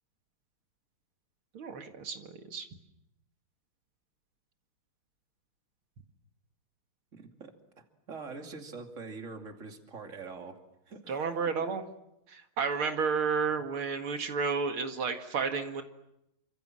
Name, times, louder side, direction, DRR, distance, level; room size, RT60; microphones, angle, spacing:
voice 1, 1.5-2.7 11.1-11.8 12.3-15.8, right 5 dB, 80° right, 5 dB, 2.8 m, -31 dB
voice 2, 7.1-7.5 8.1-10.6 10.9-11.5, right 4 dB, 35° right, 4 dB, 2.9 m, -44 dB
29.0 x 26.0 x 7.6 m, 0.84 s
omnidirectional pair, 2.3 m